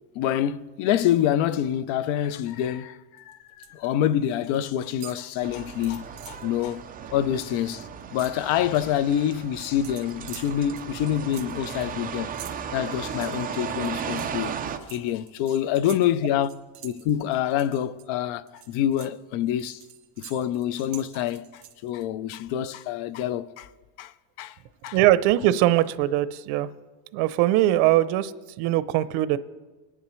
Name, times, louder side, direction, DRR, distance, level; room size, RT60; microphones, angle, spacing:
voice 1, 0.1-6.8 7.1-12.3 12.7-14.5 14.9-16.5 16.8-19.8 20.2-23.7 24.0-24.1 24.4-24.6 24.8-25.0, left 10 dB, 75° left, 0.7 m, -26 dB
sound 1, 3.2-3.8 4.1-4.6 4.9-6.5 6.9-7.1 7.4-9.0 9.8-18.0 18.5-22.0, right 12 dB, 65° right, 1.9 m, -47 dB
sound 2, 5.4-14.8, right 7 dB, 20° right, 0.4 m, -36 dB
voice 2, 24.9-26.7 27.1-29.4, right 14 dB, 85° right, 0.7 m, -21 dB
21.0 x 10.5 x 3.1 m
cardioid pair, 165°, 47 cm